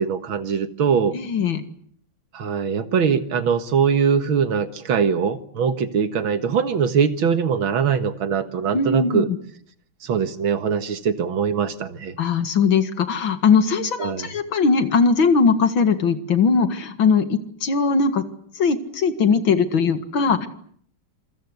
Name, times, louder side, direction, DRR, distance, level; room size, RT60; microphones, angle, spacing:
voice 1, 0.0-1.1 2.3-9.3 10.0-12.2 14.0-14.3, right 6 dB, 75° right, 10 dB, 2.4 m, -22 dB
voice 2, 1.1-1.6 8.7-9.2 12.2-18.2 18.6-20.5, left 5 dB, 70° left, 10 dB, 2.6 m, -20 dB
27.0 x 23.0 x 8.1 m, 0.62 s
omnidirectional pair, 2.2 m